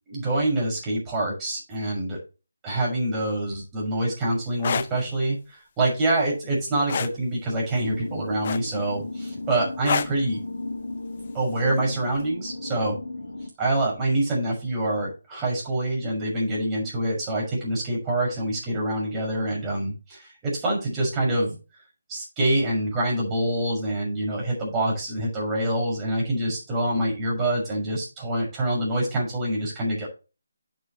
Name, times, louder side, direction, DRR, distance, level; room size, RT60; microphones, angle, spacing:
voice 1, 0.1-2.2 2.6-10.4 11.3-13.0 13.6-21.6 22.1-30.1, right 1 dB, 15° right, -3 dB, 6.2 m, -26 dB
sound 1, 4.5-4.9 6.9-7.2 8.4-8.9 9.8-10.2 11.6-11.8, left 7 dB, 40° left, 0.7 m, -26 dB
sound 2, 7.8-13.5, left 2 dB, 90° left, 2.2 m, -36 dB
11.0 x 7.4 x 3.2 m, 0.31 s
figure-of-eight pair, 160°, 0 cm